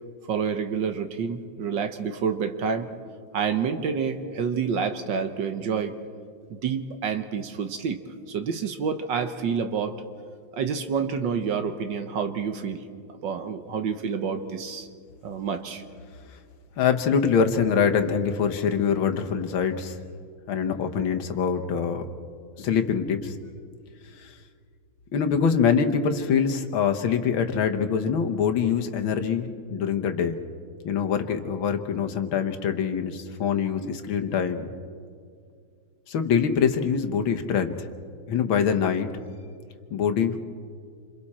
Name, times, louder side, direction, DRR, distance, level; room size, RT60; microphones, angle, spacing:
voice 1, 0.3-2.9 3.3-5.9 6.5-8.0 8.3-9.9 10.5-12.8 13.2-14.9 15.2-15.8, right 6 dB, 60° right, 8 dB, 1.6 m, -28 dB
voice 2, 16.8-20.0 20.5-22.1 22.6-23.4 24.2-24.3 25.1-30.3 30.8-34.7 36.1-37.8 38.3-39.1 39.9-40.4, left 7 dB, 70° left, 6 dB, 1.9 m, -24 dB
27.5 x 27.0 x 4.3 m, 2.2 s
omnidirectional pair, 2.3 m